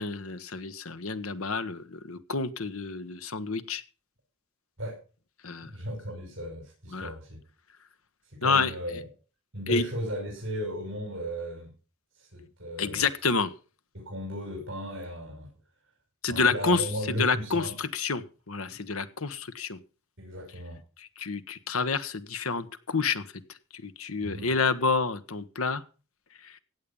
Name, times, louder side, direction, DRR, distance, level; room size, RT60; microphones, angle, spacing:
voice 1, 0.0-3.8 5.4-5.7 6.9-7.1 8.4-8.7 9.7-9.8 12.8-13.5 16.2-19.8 21.0-23.3 23.7-25.8 26.4-26.6, left 4 dB, 85° left, 12 dB, 1.3 m, -29 dB
voice 2, 5.7-7.4 8.3-9.1 9.5-11.7 12.2-13.0 13.9-15.5 16.3-17.7 18.7-18.8 20.2-20.8 24.2-24.5, equal, 60° right, -1 dB, 5.6 m, -36 dB
16.0 x 8.8 x 5.4 m, 0.36 s
head